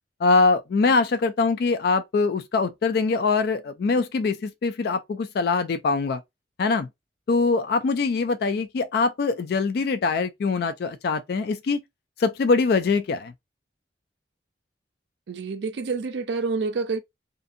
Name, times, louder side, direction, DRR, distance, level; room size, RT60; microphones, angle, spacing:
voice 1, 0.2-6.2 6.6-6.9 7.3-11.8 12.2-13.3, left 4 dB, 60° left, 0.3 m, -23 dB
voice 2, 15.3-17.0, right 4 dB, 70° right, 0.4 m, -28 dB
2.6 x 2.5 x 2.5 m
head